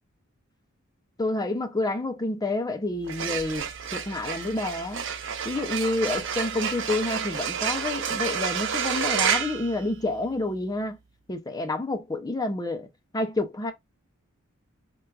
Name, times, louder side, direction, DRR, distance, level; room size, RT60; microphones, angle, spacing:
voice 1, 1.2-5.1 5.4-11.0 11.3-12.9 13.1-13.7, left 2 dB, 20° left, 0.4 m, -29 dB
sound 1, 2.9-10.4, right 7 dB, 60° right, 0.5 m, -30 dB
4.5 x 2.2 x 2.2 m
head